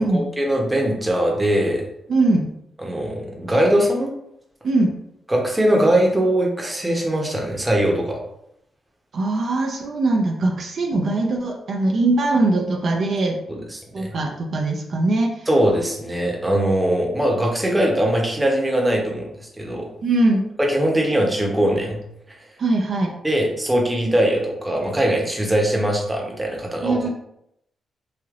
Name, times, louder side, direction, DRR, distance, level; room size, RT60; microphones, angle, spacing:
voice 1, 0.0-1.8 2.8-4.1 5.3-8.2 13.5-14.1 15.5-19.9 20.6-22.0 22.3-22.4 23.2-27.0, right 1 dB, 15° right, 0 dB, 0.7 m, -21 dB
voice 2, 2.1-2.5 4.6-4.9 9.1-13.4 13.9-15.5 20.0-20.5 22.6-23.1 26.8-27.1, right 2 dB, 60° right, 2 dB, 0.4 m, -21 dB
3.2 x 2.8 x 2.4 m, 0.77 s
cardioid pair, 85°, 0 cm